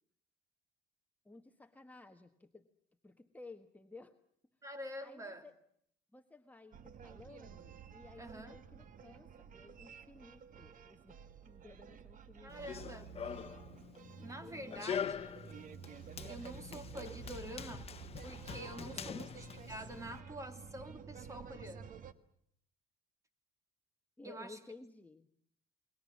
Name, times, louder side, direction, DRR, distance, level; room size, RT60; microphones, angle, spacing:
voice 1, 1.2-2.7 3.0-4.1 5.0-5.5 6.1-12.8 14.4-14.9 19.0-19.2 24.2-25.3, left 3 dB, 10° left, 5 dB, 1.3 m, -55 dB
voice 2, 4.6-5.4 8.2-8.6 12.4-13.1 14.2-15.2 16.3-17.9 18.2-22.0 24.2-24.6, right 1 dB, 20° right, 9 dB, 3.2 m, -47 dB
sound 1, 6.7-22.1, right 8 dB, 50° right, 1.7 m, -52 dB
Run, 12.5-20.2, left 7 dB, 35° left, 1.1 m, -44 dB
29.0 x 22.5 x 7.3 m, 0.69 s
cardioid pair, 110°, 17 cm